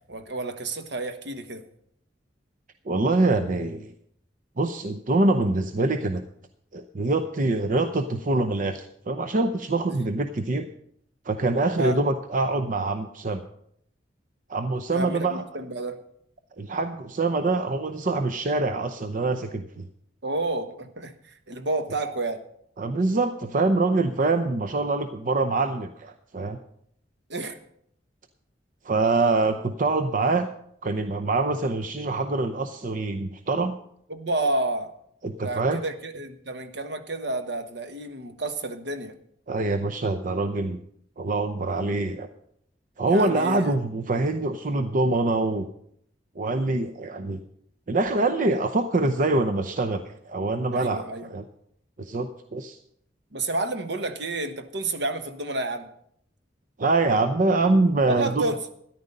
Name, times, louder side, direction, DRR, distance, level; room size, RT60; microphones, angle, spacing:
voice 1, 0.1-1.6 11.8-12.0 14.9-16.0 20.2-22.4 27.3-27.6 34.1-34.9 35.4-39.2 43.1-43.7 50.7-51.3 53.3-55.9 58.0-58.6, right 2 dB, 70° right, 8 dB, 1.2 m, -30 dB
voice 2, 2.9-3.9 4.6-6.2 6.7-10.7 11.3-13.4 14.5-15.4 16.6-19.9 22.8-26.6 28.8-30.5 30.8-33.7 35.2-35.8 39.5-40.8 41.2-42.3 43.0-45.7 46.4-47.4 47.9-51.0 51.3-51.4 52.0-52.8 56.8-58.5, right 2 dB, 45° right, 8 dB, 0.7 m, -25 dB
13.5 x 10.5 x 5.3 m, 0.71 s
head